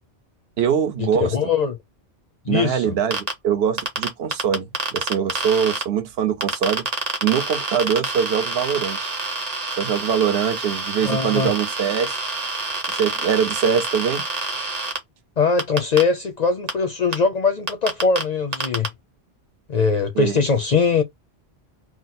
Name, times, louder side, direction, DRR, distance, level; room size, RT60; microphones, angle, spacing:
voice 1, 0.6-1.3 2.5-6.8 7.2-9.1 9.8-12.1 12.9-14.2 20.1-20.4, right 8 dB, 70° right, 0.9 m, -23 dB
voice 2, 1.1-1.8 2.4-3.0 11.0-11.5 15.4-18.9 19.7-21.0, left 5 dB, 55° left, 0.5 m, -21 dB
sound 1, 3.1-3.3 3.8-5.8 6.4-15.0 15.6-16.0 16.7-16.8 17.1-17.2 17.7-18.2 18.5-18.9, right 3 dB, 40° right, 0.9 m, -27 dB
2.9 x 2.0 x 4.0 m
omnidirectional pair, 1.1 m